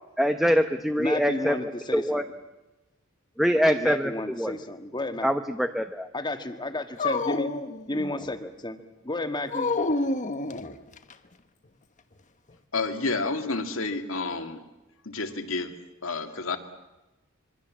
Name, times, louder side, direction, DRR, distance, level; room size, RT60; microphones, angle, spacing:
voice 1, 0.2-1.5 1.9-2.2 3.4-4.1 4.4-4.5 5.2-6.1, equal, ahead, 7 dB, 0.9 m, -23 dB
voice 2, 1.0-2.2 3.7-5.3 6.1-7.5 7.9-8.8 9.0-9.7, left 2 dB, 20° left, 8 dB, 1.7 m, -32 dB
Dog, 7.0-8.4 9.5-11.1, left 2 dB, 35° left, 1.2 m, -28 dB
voice 3, 12.7-14.6 15.0-15.7 16.0-16.6, left 3 dB, 70° left, 7 dB, 2.3 m, -30 dB
26.5 x 23.5 x 7.5 m, 1.0 s
head